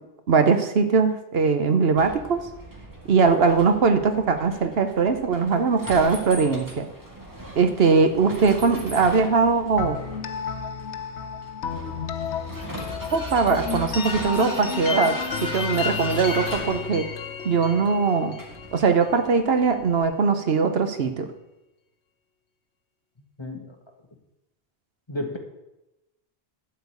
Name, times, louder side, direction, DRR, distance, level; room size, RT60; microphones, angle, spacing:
voice 1, 0.3-2.4 3.1-6.9 7.5-10.0 13.1-17.1 17.4-18.3 18.7-21.3, right 5 dB, 65° right, 8 dB, 1.1 m, -21 dB
Vehicle, 2.0-20.0, equal, 20° right, 1.9 m, -38 dB
sound 1, 9.8-19.5, left 7 dB, 90° left, 1.1 m, -32 dB
voice 2, 23.4-23.7 25.1-25.4, left 1 dB, 25° left, 3 dB, 1.4 m, -32 dB
12.0 x 4.6 x 8.3 m, 0.95 s
omnidirectional pair, 1.1 m